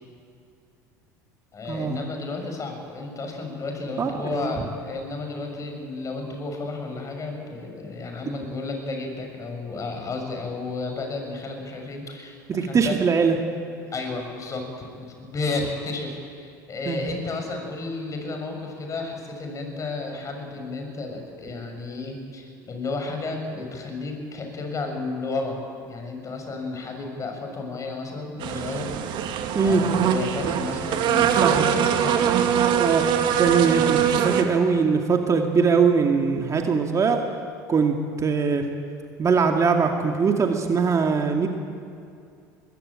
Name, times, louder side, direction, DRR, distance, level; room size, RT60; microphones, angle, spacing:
voice 1, 1.5-12.9 13.9-28.9 29.6-32.2, left 3 dB, 35° left, 3 dB, 7.2 m, -32 dB
voice 2, 4.0-4.5 12.5-13.4 16.9-17.0 29.5-29.8 31.4-31.7 32.8-33.0 33.4-37.2 37.7-38.0 38.2-38.7 39.2-41.5, right 5 dB, 30° right, 3 dB, 2.3 m, -21 dB
sound 1, 28.4-34.4, right 9 dB, 55° right, 2.5 m, -22 dB
23.0 x 20.5 x 9.0 m, 2.5 s
hypercardioid pair, 75°, 10 cm